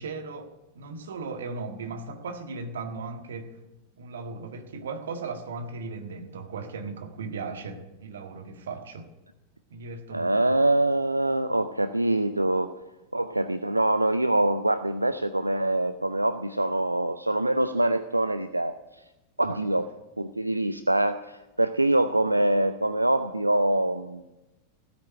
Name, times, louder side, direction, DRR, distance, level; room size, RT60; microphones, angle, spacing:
voice 1, 0.0-3.6 4.0-9.1 9.7-10.5 19.4-19.6, right 4 dB, 65° right, 6 dB, 1.6 m, -37 dB
voice 2, 10.1-12.7 13.1-18.8 19.4-19.9 20.2-24.2, right 1 dB, 85° right, 12 dB, 0.5 m, -24 dB
16.0 x 8.7 x 10.0 m, 1.0 s
figure-of-eight pair, 90°, 0 cm